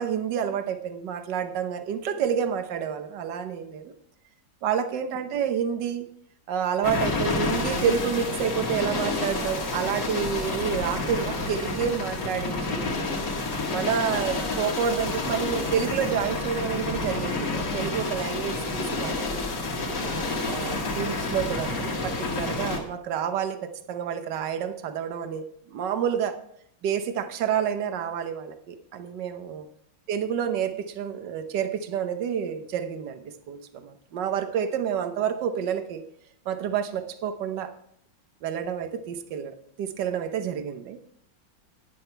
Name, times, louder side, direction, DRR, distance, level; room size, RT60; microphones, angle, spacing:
voice 1, 0.0-3.9 4.6-6.1 6.5-12.8 13.7-19.4 20.5-26.4 26.8-29.7 30.1-36.0 36.4-37.7 38.4-41.0, right 8 dB, 70° right, 8 dB, 1.6 m, -29 dB
sound 1, 6.8-22.8, left 3 dB, 65° left, 2.5 m, -29 dB
11.0 x 10.0 x 4.5 m, 0.69 s
omnidirectional pair, 2.0 m